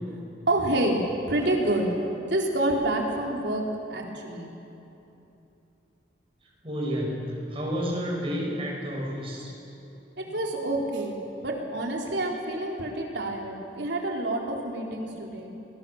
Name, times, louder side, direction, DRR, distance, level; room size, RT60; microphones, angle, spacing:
voice 1, 0.5-3.6 3.9-4.5 10.2-11.1 11.4-15.5, right 1 dB, 75° right, 0 dB, 3.9 m, -28 dB
voice 2, 6.6-9.5, equal, 30° right, -2 dB, 6.4 m, -30 dB
30.0 x 20.0 x 7.2 m, 2.9 s
head